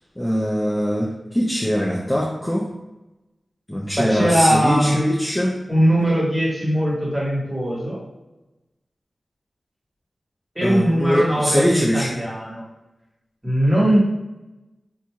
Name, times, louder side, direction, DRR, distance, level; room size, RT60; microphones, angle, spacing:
voice 1, 0.2-2.7 3.7-5.6 10.6-12.2, equal, 10° left, -4 dB, 0.5 m, -22 dB
voice 2, 3.9-5.0 5.7-8.0 10.5-12.6 13.4-14.0, equal, 15° right, -6 dB, 1.5 m, -20 dB
4.5 x 2.7 x 2.3 m, 1.0 s
wide cardioid pair, 80°, 0 cm